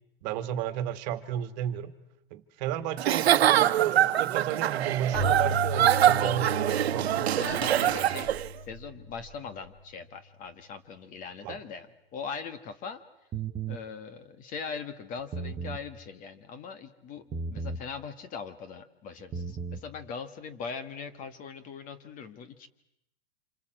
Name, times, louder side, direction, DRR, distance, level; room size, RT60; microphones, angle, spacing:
voice 1, 0.2-1.9 2.3-8.2 11.4-11.6, right 11 dB, 45° right, 11 dB, 1.9 m, -34 dB
Giggle / Chuckle chortle, 3.0-8.5, right 11 dB, 85° right, 1.2 m, -24 dB
Keyboard (musical), 5.1-9.6, right 1 dB, ahead, 4.9 m, -35 dB
voice 2, 7.4-8.3 8.7-13.0 13.7-17.2 17.5-22.7, left 5 dB, 25° left, 12 dB, 1.5 m, -40 dB
sound 1, 13.3-13.8 15.2-15.8 17.3-17.9 19.2-19.8, right 4 dB, 15° right, 1.1 m, -35 dB
27.5 x 25.5 x 7.7 m, 0.82 s
supercardioid pair, 155°, 31 cm